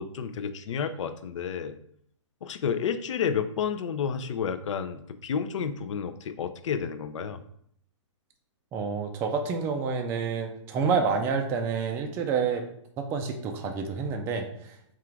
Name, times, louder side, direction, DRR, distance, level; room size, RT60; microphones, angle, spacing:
voice 1, 0.0-1.7 2.4-7.4, left 7 dB, 70° left, 10 dB, 0.5 m, -31 dB
voice 2, 8.7-12.7 13.0-14.9, right 5 dB, 15° right, 4 dB, 0.3 m, -28 dB
3.7 x 2.4 x 4.4 m, 0.69 s
hypercardioid pair, 145°, 16 cm